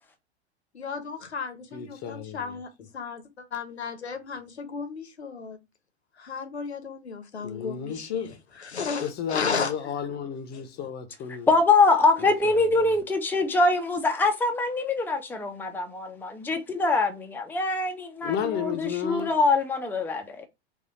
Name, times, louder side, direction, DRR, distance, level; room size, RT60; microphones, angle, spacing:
voice 1, 0.7-5.6 6.2-8.3 8.5-9.7, left 5 dB, 75° left, 1.1 m, -34 dB
voice 2, 1.7-2.6 7.4-8.3 9.0-11.5 12.2-12.3 18.2-19.3, left 8 dB, 30° left, 0.9 m, -32 dB
voice 3, 11.5-20.5, left 3 dB, 5° left, 0.7 m, -24 dB
4.1 x 2.6 x 3.9 m
figure-of-eight pair, 90°, 33 cm